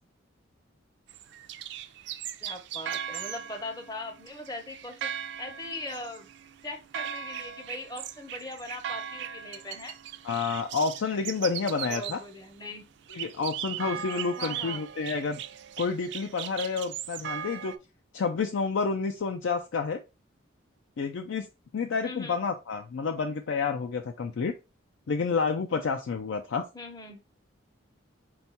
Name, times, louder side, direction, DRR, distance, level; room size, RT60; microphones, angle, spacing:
sound 1, 1.1-12.3 13.1-17.8, right 9 dB, 60° right, 0.3 m, -38 dB
voice 1, 2.4-5.1 5.4-6.3 6.6-9.9 11.9-12.8 14.4-14.8 22.0-22.4 26.7-27.2, left 2 dB, 20° left, 4 dB, 0.6 m, -40 dB
voice 2, 10.2-12.2 13.1-15.4 15.8-17.7 18.1-20.0 21.0-21.5 21.7-24.5 25.1-26.6, left 5 dB, 70° left, 4 dB, 0.4 m, -29 dB
4.4 x 2.3 x 4.1 m, 0.28 s
head